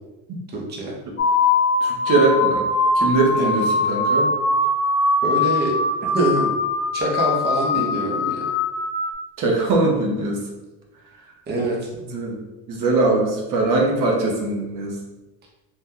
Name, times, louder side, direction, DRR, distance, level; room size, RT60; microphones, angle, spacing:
voice 1, 0.5-0.9 3.3-3.6 5.2-5.7 6.1-6.5 6.9-8.5 11.5-11.9, right 2 dB, 25° right, -3 dB, 0.7 m, -24 dB
sound 1, 1.2-9.1, left 3 dB, 30° left, 0.7 m, -21 dB
voice 2, 1.8-2.6 3.0-4.3 9.4-10.4 12.1-12.4 12.7-14.9, right 3 dB, 60° right, -1 dB, 0.8 m, -21 dB
2.8 x 2.2 x 3.6 m, 1.1 s
cardioid pair, 130°, 37 cm